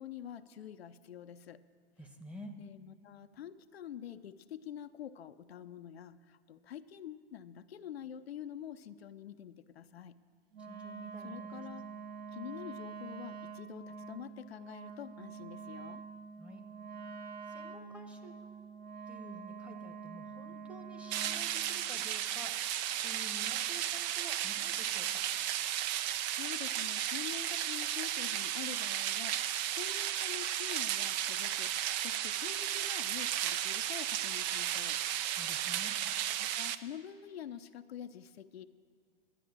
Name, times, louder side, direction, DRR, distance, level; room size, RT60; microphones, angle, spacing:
voice 1, 0.0-1.6 2.6-10.2 11.2-11.8 12.3-16.0 25.8-35.0 36.4-38.7, left 9 dB, 80° left, 9 dB, 0.6 m, -47 dB
voice 2, 2.0-2.6 10.6-11.6 16.4-16.6 17.5-18.3 19.1-22.6 23.0-25.3 35.4-35.9, equal, 5° right, 5 dB, 1.1 m, -50 dB
Wind instrument woodwind instrument, 10.5-21.5, right 6 dB, 30° right, 1.0 m, -46 dB
sound 1, 21.1-36.8, right 11 dB, 45° right, 0.6 m, -34 dB
12.0 x 9.1 x 7.3 m, 2.2 s
hypercardioid pair, 110°, 31 cm